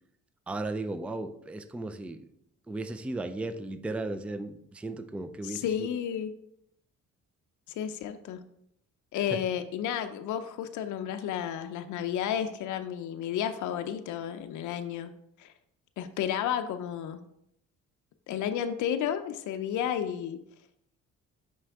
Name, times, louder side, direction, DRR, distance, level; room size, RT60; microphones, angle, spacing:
voice 1, 0.5-2.2 2.7-5.9 9.3-9.4, right 2 dB, 5° right, 9 dB, 0.3 m, -35 dB
voice 2, 5.4-6.3 7.7-8.4 9.1-15.1 15.4-15.5 16.0-17.2 18.3-20.4, left 9 dB, 80° left, 8 dB, 0.5 m, -32 dB
5.7 x 4.6 x 3.5 m, 0.75 s
cardioid pair, 90°, 30 cm